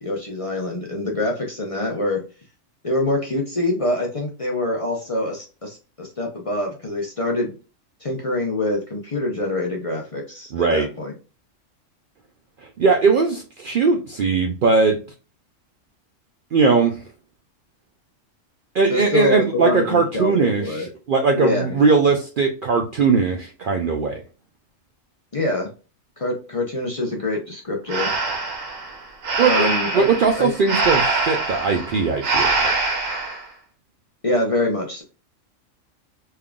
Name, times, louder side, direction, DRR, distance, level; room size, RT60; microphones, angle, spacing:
voice 1, 0.0-2.2 2.8-7.5 8.0-11.1 18.9-20.9 21.3-21.8 25.3-25.7 26.2-28.1 29.4-30.1 30.4-30.5 34.2-35.0, left 2 dB, 35° left, 0 dB, 0.6 m, -25 dB
voice 2, 10.5-10.9 12.8-15.0 16.5-17.0 18.7-24.2 29.4-29.7 29.9-32.7, right 4 dB, 60° right, 3 dB, 0.5 m, -19 dB
Breathing, 27.9-33.4, right 3 dB, 85° right, 1.4 m, -23 dB
3.6 x 3.3 x 2.3 m, 0.33 s
omnidirectional pair, 1.3 m